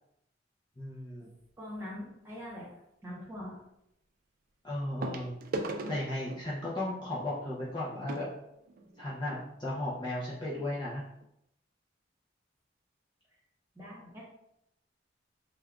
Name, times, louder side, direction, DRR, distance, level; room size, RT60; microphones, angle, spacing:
voice 1, 0.8-1.3 4.6-5.4 5.9-8.3 9.0-11.0, left 1 dB, 25° left, -8 dB, 0.6 m, -35 dB
sound 1, 1.4-1.7 3.4-3.5 5.0-9.4 10.2-10.3 10.5-10.7 11.2-11.3, right 2 dB, 50° right, 0.3 m, -41 dB
voice 2, 1.6-2.7 3.0-3.6 13.7-14.2, left 1 dB, 10° right, -6 dB, 1.3 m, -42 dB
3.3 x 2.3 x 3.5 m, 0.79 s
head